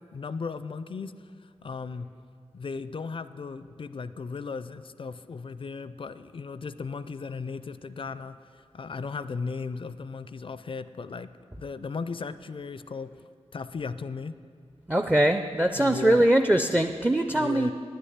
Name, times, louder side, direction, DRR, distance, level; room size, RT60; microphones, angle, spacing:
voice 1, 0.1-1.1 1.4-2.1 2.5-11.3 11.6-13.1 13.5-14.4 15.7-16.3 17.2-17.7, left 4 dB, 50° left, 13 dB, 0.4 m, -36 dB
voice 2, 14.9-17.7, right 1 dB, 10° right, 8 dB, 0.4 m, -22 dB
9.6 x 6.7 x 7.8 m, 2.2 s
cardioid pair, 55°, 11 cm